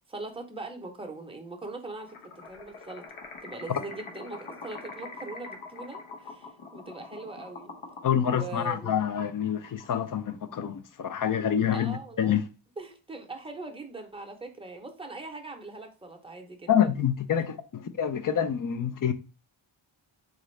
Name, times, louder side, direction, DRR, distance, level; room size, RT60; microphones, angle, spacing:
voice 1, 0.1-2.2 2.4-3.0 3.4-7.7 8.2-9.0 11.7-12.4 12.8-16.9, right 3 dB, 10° right, 0.7 m, -41 dB
sound 1, 2.1-10.5, left 3 dB, 80° left, 1.0 m, -44 dB
voice 2, 8.0-12.4 16.7-19.1, left 9 dB, 45° left, 0.4 m, -27 dB
3.9 x 2.5 x 3.1 m
wide cardioid pair, 100°, 49 cm